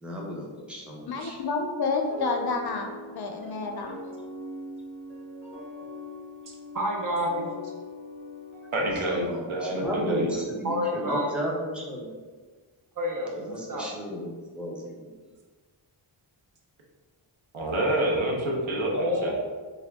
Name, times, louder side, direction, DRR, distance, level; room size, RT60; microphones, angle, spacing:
voice 1, 0.0-1.4 9.1-12.1 13.3-14.9, equal, ahead, -3 dB, 0.7 m, -34 dB
voice 2, 1.1-4.0, left 4 dB, 55° left, 3 dB, 0.5 m, -29 dB
sound 1, 2.1-8.9, left 1 dB, 25° right, 1.4 m, -41 dB
voice 3, 6.7-7.5 10.6-11.3 13.0-13.3 13.7-13.9 18.9-19.4, equal, 45° right, 0 dB, 0.5 m, -28 dB
voice 4, 8.7-10.4 17.5-19.3, right 1 dB, 75° right, -1 dB, 0.9 m, -27 dB
3.4 x 2.2 x 3.4 m, 1.4 s
wide cardioid pair, 85°, 48 cm